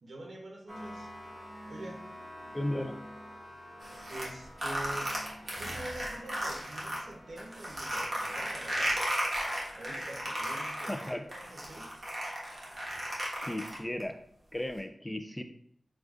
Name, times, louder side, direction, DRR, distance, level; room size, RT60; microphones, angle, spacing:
voice 1, 0.0-1.1 1.7-2.0 4.1-5.1 5.6-9.0 9.8-11.9, right 1 dB, 80° right, 1 dB, 0.7 m, -45 dB
sound 1, 0.7-13.2, equal, 35° right, 1.6 m, -50 dB
voice 2, 2.5-3.0 10.9-11.3 13.4-14.2 14.5-15.4, left 1 dB, 15° left, 7 dB, 0.3 m, -35 dB
sound 2, 3.8-7.0 7.4-14.0, right 1 dB, 50° right, 1.2 m, -35 dB
6.2 x 2.4 x 2.3 m, 0.65 s
wide cardioid pair, 85°, 0 cm